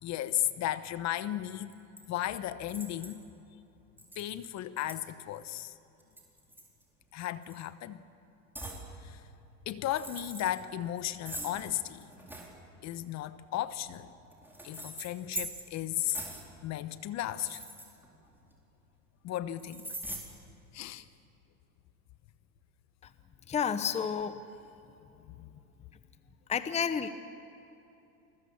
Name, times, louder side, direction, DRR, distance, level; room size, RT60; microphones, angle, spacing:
voice 1, 0.0-1.7 2.1-3.2 4.2-5.7 7.1-8.0 9.0-9.2 9.7-12.0 12.8-14.1 14.6-16.2 16.6-17.6 19.2-19.9 20.7-21.1 25.4-25.5, left 13 dB, 35° left, 14 dB, 1.1 m, -35 dB
sound 1, 1.7-2.0 2.7-3.2 4.0-4.5 4.9-5.0 6.0-7.0 7.4-7.7 8.5-8.8 9.8-10.6 11.2-12.5 13.5-15.8 16.1-16.5 17.2-18.5 19.6-20.2, right 1 dB, 5° right, 4.5 m, -42 dB
voice 2, 23.5-24.4 26.5-27.1, left 7 dB, 15° left, 11 dB, 0.9 m, -30 dB
29.0 x 21.0 x 7.2 m, 2.9 s
hypercardioid pair, 110°, 44 cm